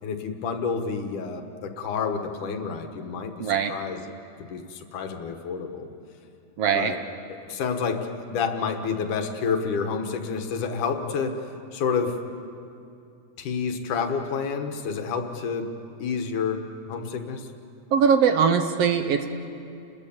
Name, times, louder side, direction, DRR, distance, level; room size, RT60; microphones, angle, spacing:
voice 1, 0.0-4.0 4.5-5.9 6.7-7.0 7.5-11.5 11.7-12.2 13.4-15.7 16.0-17.5, left 5 dB, 90° left, 5 dB, 3.0 m, -29 dB
voice 2, 3.4-3.7 6.6-6.9 17.9-19.3, right 7 dB, 65° right, 7 dB, 1.8 m, -21 dB
30.0 x 21.0 x 7.3 m, 2.6 s
omnidirectional pair, 3.5 m